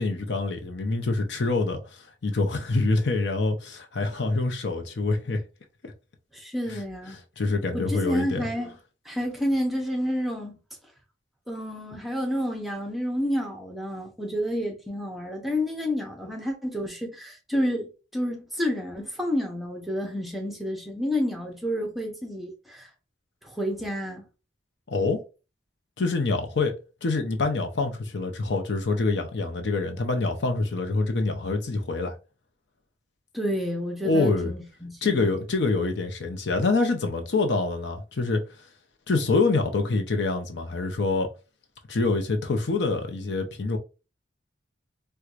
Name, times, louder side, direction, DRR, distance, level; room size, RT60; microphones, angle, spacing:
voice 1, 0.0-5.4 5.8-5.9 6.7-6.8 7.4-8.4 24.9-25.2 26.0-26.7 27.0-32.1 34.0-34.5 35.0-38.4 39.1-41.3 41.9-43.8, left 3 dB, 65° left, 0.6 m, -26 dB
voice 2, 6.3-7.2 7.7-8.7 9.0-10.6 11.5-22.9 23.4-24.2 33.3-35.4, equal, ahead, 0.7 m, -29 dB
4.5 x 2.2 x 2.5 m
head